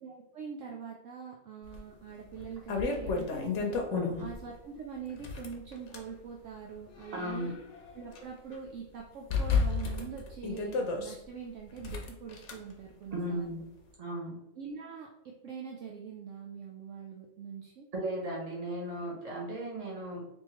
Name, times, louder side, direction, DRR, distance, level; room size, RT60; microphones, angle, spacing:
voice 1, 0.0-3.7 4.2-7.5 7.9-13.6 14.6-17.9, right 6 dB, 70° right, 0 dB, 0.8 m, -44 dB
sound 1, 1.7-1.8 2.3-4.4 5.1-6.1 6.8-8.2 8.5-8.6 9.3-11.1 11.8-12.5, left 4 dB, 60° left, 0.9 m, -32 dB
voice 2, 3.9-4.2 7.1-7.5 13.1-13.6 14.0-14.3 17.9-20.2, right 1 dB, 30° right, -4 dB, 1.1 m, -36 dB
3.5 x 3.1 x 2.9 m, 0.80 s
omnidirectional pair, 1.5 m